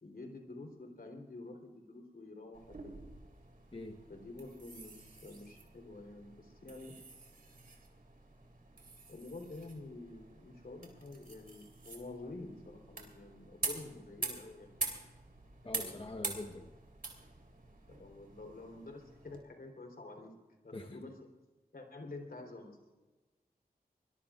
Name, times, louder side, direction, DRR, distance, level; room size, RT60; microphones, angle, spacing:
voice 1, 0.0-2.9 4.1-7.0 9.1-14.7 15.6-16.0 17.7-20.3 20.6-21.2 21.7-22.8, left 2 dB, 70° left, 3 dB, 3.7 m, -49 dB
sound 1, 2.5-19.4, right 3 dB, 65° right, 3.7 m, -46 dB
voice 2, 15.6-16.7 20.7-20.9, left 2 dB, 35° left, 3 dB, 1.2 m, -44 dB
24.5 x 20.5 x 2.5 m, 1.2 s
wide cardioid pair, 60°, 16 cm